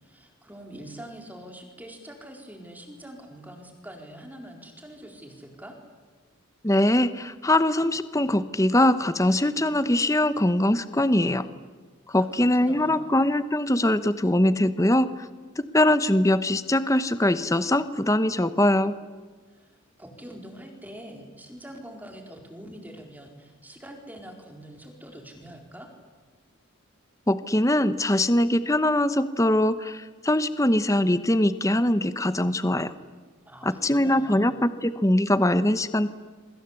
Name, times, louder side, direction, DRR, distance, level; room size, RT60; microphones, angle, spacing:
voice 1, 0.0-5.8 12.2-13.1 19.5-25.9 33.4-34.5, right 1 dB, 10° right, 3 dB, 4.4 m, -44 dB
voice 2, 6.6-11.5 12.1-15.3 15.7-19.0 27.3-32.9 33.6-36.1, left 1 dB, 15° left, 13 dB, 0.9 m, -22 dB
28.0 x 24.0 x 8.4 m, 1.4 s
head